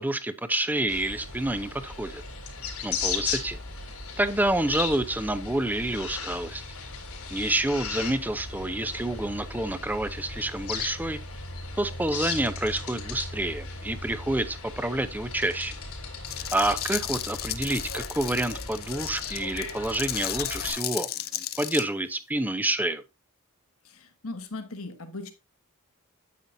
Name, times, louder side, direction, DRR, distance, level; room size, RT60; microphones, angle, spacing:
voice 1, 0.0-2.2 2.8-3.6 4.2-6.6 7.3-11.2 11.7-15.7 16.5-21.1 21.3-23.0, right 1 dB, 10° right, 0.5 m, -28 dB
sound 1, 0.9-20.7, left 4 dB, 90° left, 3.2 m, -37 dB
sound 2, 16.3-21.8, left 13 dB, 45° left, 0.5 m, -34 dB
voice 2, 23.8-25.3, left 2 dB, 75° left, 1.4 m, -38 dB
9.3 x 8.7 x 2.6 m
head